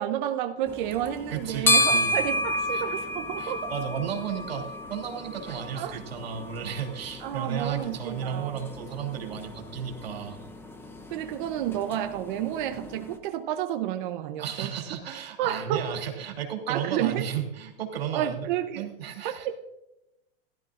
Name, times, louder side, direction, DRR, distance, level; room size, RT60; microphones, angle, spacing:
voice 1, 0.0-3.7 5.7-6.0 7.2-8.6 11.1-14.7 15.4-15.9 16.7-17.3 18.1-18.9 19.2-19.3, right 11 dB, 55° right, 6 dB, 0.9 m, -30 dB
sound 1, 0.7-13.2, left 1 dB, 10° left, 0.8 m, -31 dB
voice 2, 1.3-2.1 2.7-2.8 3.4-10.4 14.4-18.5 18.7-19.5, right 8 dB, 80° right, 1 dB, 2.9 m, -34 dB
16.5 x 12.5 x 2.5 m, 0.93 s
hypercardioid pair, 115°, 30 cm